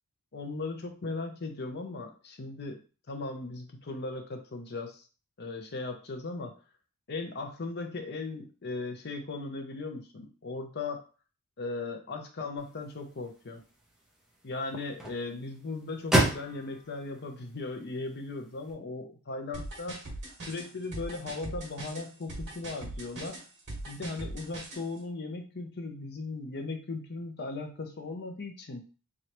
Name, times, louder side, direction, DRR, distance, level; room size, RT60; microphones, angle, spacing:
voice 1, 0.3-2.8 3.1-5.0 5.4-6.5 7.1-11.0 11.6-13.6 14.4-20.1 20.4-23.4 23.9-28.8, left 3 dB, 50° left, 4 dB, 0.7 m, -37 dB
sound 1, 12.6-18.7, right 1 dB, ahead, 0.7 m, -34 dB
sound 2, 19.5-24.8, right 2 dB, 50° right, 1.6 m, -40 dB
3.7 x 3.2 x 3.0 m, 0.37 s
head